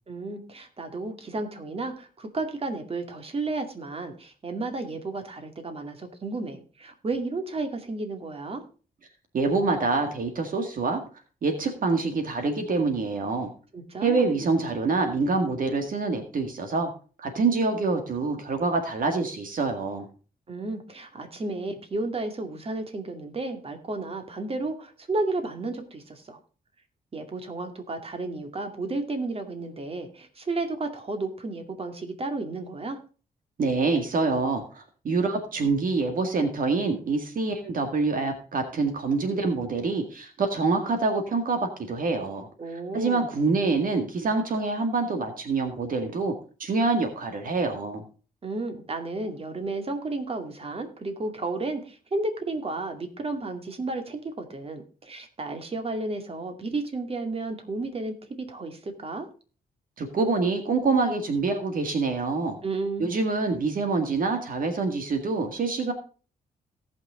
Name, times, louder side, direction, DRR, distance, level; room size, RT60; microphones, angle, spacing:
voice 1, 0.1-8.6 13.7-14.3 20.5-26.4 27.1-33.0 42.6-43.3 48.4-59.3 62.6-63.1, right 2 dB, 35° right, 6 dB, 2.3 m, -32 dB
voice 2, 9.3-11.0 11.4-13.5 14.0-16.9 17.2-20.1 33.6-42.5 42.9-46.3 46.6-48.0 60.0-62.6 63.0-65.9, right 3 dB, 60° right, 5 dB, 2.0 m, -26 dB
18.0 x 6.1 x 3.8 m, 0.37 s
cardioid pair, 95°, 16 cm